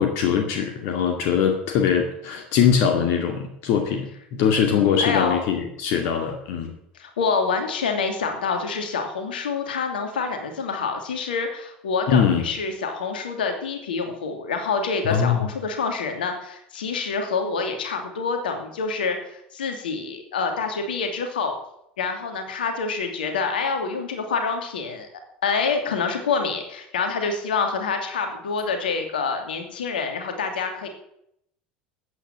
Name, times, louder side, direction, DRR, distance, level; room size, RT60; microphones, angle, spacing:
voice 1, 0.0-4.1 4.3-6.7 12.1-12.5 15.0-15.4, left 7 dB, 55° left, 3 dB, 2.2 m, -22 dB
voice 2, 5.0-5.4 7.0-21.5 22.0-25.1 25.4-30.9, left 5 dB, 75° left, 5 dB, 2.7 m, -27 dB
14.0 x 9.1 x 7.5 m, 0.76 s
figure-of-eight pair, 70°, 5 cm